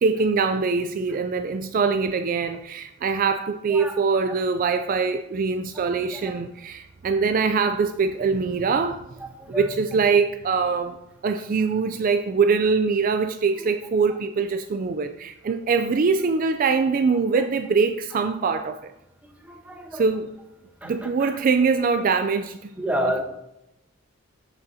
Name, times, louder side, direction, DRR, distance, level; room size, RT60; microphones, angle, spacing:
voice 1, 0.0-9.1 9.5-11.0 11.2-18.9 19.9-20.3 20.8-22.7, right 5 dB, 45° right, 8 dB, 0.4 m, -23 dB
voice 2, 19.4-20.0 20.8-20.9 22.8-23.2, equal, 10° right, 2 dB, 0.9 m, -28 dB
13.5 x 5.1 x 2.7 m, 0.87 s
head